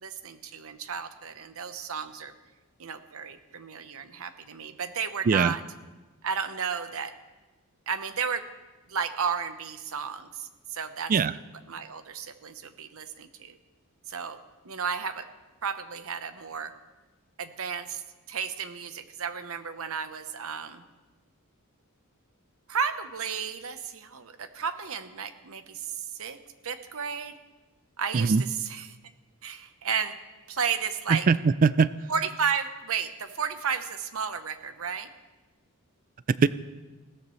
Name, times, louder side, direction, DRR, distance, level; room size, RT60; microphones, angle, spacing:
voice 1, 0.0-2.3 2.8-5.6 6.2-7.1 7.9-8.4 8.9-11.1 11.7-13.6 14.1-14.4 14.6-15.3 15.6-16.7 17.4-18.0 18.3-20.8 22.7-26.4 26.6-27.4 28.0-29.0 29.4-30.2 30.5-31.3 32.1-35.1, right 6 dB, 70° right, 10 dB, 1.0 m, -33 dB
voice 2, 31.1-31.9 36.4-36.5, right 5 dB, 40° right, 16 dB, 0.4 m, -21 dB
20.5 x 16.5 x 3.2 m, 1.2 s
head